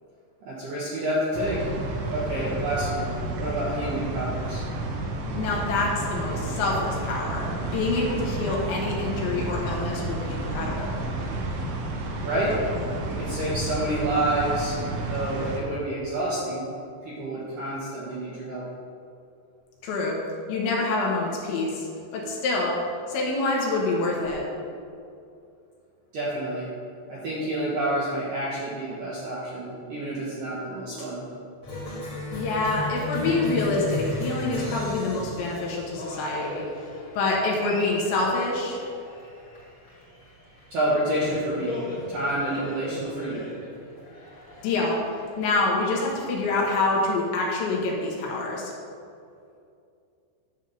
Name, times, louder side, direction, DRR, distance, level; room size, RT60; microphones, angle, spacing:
voice 1, 0.4-1.7 2.1-4.6 12.2-12.5 13.0-14.8 15.0-16.6 17.0-18.6 26.1-26.7 27.1-31.3 40.7-41.8 42.1-43.5, right 1 dB, 70° right, -8 dB, 2.1 m, -28 dB
sound 1, 1.3-15.6, right 2 dB, 85° right, 3.6 m, -31 dB
voice 2, 5.3-7.5 7.7-11.0 19.8-20.2 20.5-21.9 22.1-22.8 23.1-24.4 32.3-36.6 37.2-38.8 44.6-45.0 45.4-48.7, left 3 dB, 75° left, -3 dB, 3.3 m, -26 dB
Cheering, 31.6-46.8, left 1 dB, 35° left, 2.0 m, -36 dB
10.5 x 3.7 x 6.7 m, 2.4 s
omnidirectional pair, 5.6 m